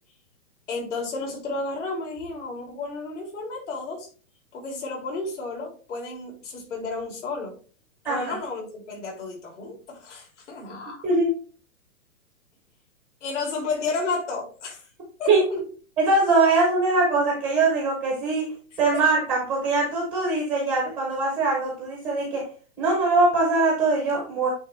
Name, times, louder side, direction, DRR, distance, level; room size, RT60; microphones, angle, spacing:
voice 1, 0.7-4.1 4.5-7.5 8.1-11.0 13.2-14.9 15.2-15.7 18.9-19.0, left 3 dB, 60° left, 3.6 m, -32 dB
voice 2, 8.0-8.3 11.0-11.3 15.3-15.4 16.0-18.5 18.8-22.5 22.8-24.5, right 3 dB, 5° right, 0.5 m, -22 dB
9.1 x 3.4 x 3.5 m
hypercardioid pair, 165°, 41 cm